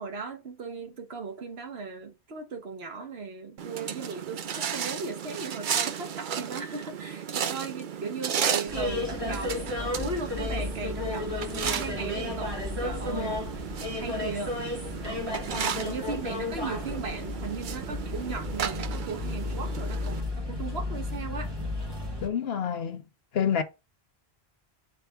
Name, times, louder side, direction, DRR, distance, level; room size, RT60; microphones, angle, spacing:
voice 1, 0.0-13.7 14.0-14.5 15.5-21.5, right 4 dB, 75° right, 1.5 m, -37 dB
sound 1, 3.6-20.2, right 8 dB, 55° right, 0.7 m, -35 dB
sound 2, 8.7-22.3, left 2 dB, 25° right, 1.8 m, -33 dB
voice 2, 22.2-23.0 23.3-23.6, left 8 dB, 70° left, 1.2 m, -27 dB
7.8 x 3.4 x 5.8 m
omnidirectional pair, 1.1 m